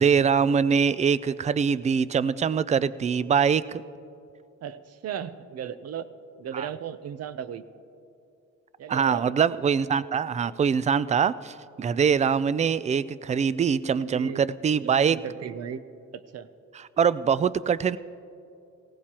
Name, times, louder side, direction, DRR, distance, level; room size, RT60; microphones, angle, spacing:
voice 1, 0.0-3.8 6.5-6.7 8.9-15.2 16.7-18.0, right 6 dB, 25° right, 17 dB, 0.3 m, -23 dB
voice 2, 4.6-6.1 6.4-7.6 8.8-9.4 13.9-14.4 14.8-15.8 16.1-16.5, right 8 dB, 55° right, 14 dB, 0.7 m, -36 dB
19.0 x 16.5 x 2.9 m, 2.6 s
cardioid pair, 90°, 30 cm